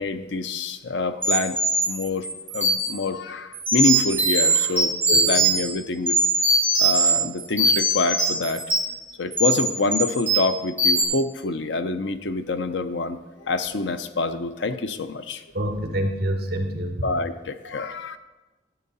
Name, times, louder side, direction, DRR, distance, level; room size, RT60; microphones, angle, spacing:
voice 1, 0.0-1.6 1.9-2.3 2.5-4.9 5.3-6.2 6.8-8.6 9.2-15.4 17.0-18.2, left 3 dB, 70° left, 10 dB, 0.6 m, -26 dB
sound 1, 1.2-3.0 3.5-5.7 6.1-7.1 7.4-8.9 9.3-9.6 9.9-10.5 10.8-11.0, right 2 dB, 10° right, 3.5 m, -21 dB
voice 2, 15.5-17.0, right 1 dB, 55° right, 4 dB, 1.5 m, -26 dB
12.0 x 8.7 x 4.1 m, 1.2 s
head